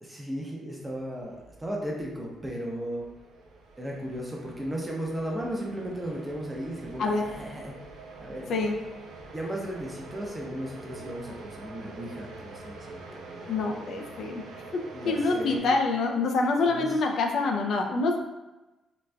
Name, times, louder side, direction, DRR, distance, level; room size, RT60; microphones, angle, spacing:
voice 1, 0.0-3.0 3.8-7.7 8.2-8.7 9.3-13.7 14.9-15.8 16.7-17.0, equal, 15° right, -2 dB, 0.7 m, -36 dB
sound 1, 0.8-15.6, right 3 dB, 90° right, 0.4 m, -46 dB
voice 2, 13.5-14.4 14.7-18.2, left 3 dB, 70° left, 3 dB, 0.3 m, -26 dB
3.9 x 2.3 x 2.2 m, 1.0 s
cardioid pair, 90°, 0 cm